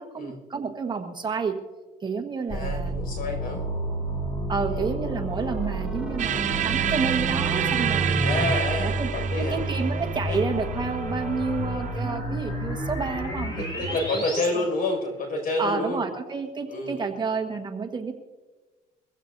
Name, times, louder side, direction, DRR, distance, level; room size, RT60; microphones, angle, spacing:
voice 1, 0.0-1.6 2.0-2.9 4.5-8.2 8.8-14.2 14.5-14.6 15.6-18.1, right 5 dB, 25° right, 2 dB, 1.4 m, -30 dB
voice 2, 2.5-3.6 4.7-4.8 8.2-9.6 10.3-10.4 13.6-16.0 16.7-17.1, left 2 dB, 60° left, 3 dB, 5.7 m, -29 dB
sound 1, 2.5-14.5, right 1 dB, 30° left, 4.7 m, -30 dB
sound 2, 5.3-8.6, right 1 dB, 5° right, 0.4 m, -32 dB
sound 3, 6.2-12.1, right 10 dB, 45° right, 0.6 m, -29 dB
23.0 x 15.5 x 2.7 m, 1.3 s
cardioid pair, 110°, 17 cm